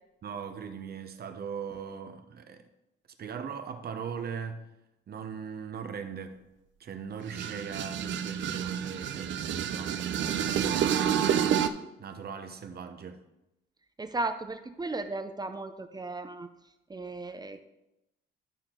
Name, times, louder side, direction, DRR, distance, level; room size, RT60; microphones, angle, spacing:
voice 1, 0.2-2.6 3.2-4.6 5.1-6.4 6.8-11.5 12.0-13.2, right 6 dB, 50° right, 0.9 m, -40 dB
sound 1, 7.3-11.7, right 9 dB, 70° right, 0.6 m, -29 dB
voice 2, 14.0-16.5 16.9-17.6, right 2 dB, 20° right, 0.6 m, -35 dB
12.0 x 4.4 x 3.8 m
cardioid pair, 90°, 20 cm